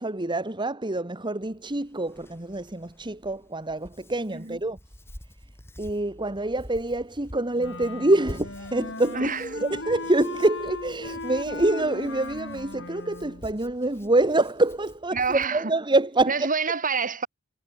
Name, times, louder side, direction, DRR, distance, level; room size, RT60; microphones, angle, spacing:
voice 1, 0.0-4.8 5.8-16.5, right 2 dB, 20° right, 1.8 m, -26 dB
Hands, 1.4-15.5, equal, 10° left, 3.0 m, -48 dB
Wind instrument woodwind instrument, 7.6-13.5, left 2 dB, 60° left, 7.4 m, -37 dB
voice 2, 15.1-15.6 16.3-17.3, right 5 dB, 40° right, 3.4 m, -27 dB
head